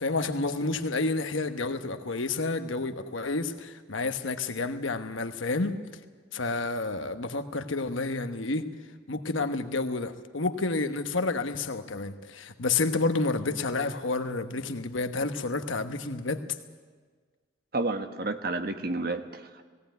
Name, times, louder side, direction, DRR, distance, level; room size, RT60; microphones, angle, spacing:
voice 1, 0.0-5.8 6.3-8.7 9.1-16.4, left 3 dB, 80° left, 8 dB, 1.2 m, -30 dB
voice 2, 17.7-19.6, right 2 dB, 50° right, 7 dB, 1.3 m, -31 dB
17.5 x 17.0 x 9.3 m, 1.5 s
head